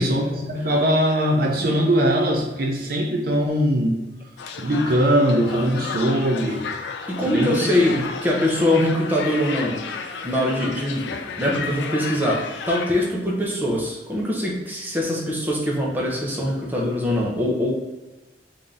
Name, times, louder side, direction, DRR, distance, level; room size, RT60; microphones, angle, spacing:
voice 1, 0.0-4.0 4.6-6.6 7.2-7.7 7.9-8.1, equal, 55° right, 1 dB, 0.5 m, -21 dB
sound 1, 4.4-13.1, left 5 dB, 70° left, 0.3 m, -33 dB
voice 2, 7.1-9.8 10.2-17.7, left 1 dB, 10° right, -3 dB, 0.6 m, -23 dB
3.4 x 2.7 x 3.6 m, 1.2 s
head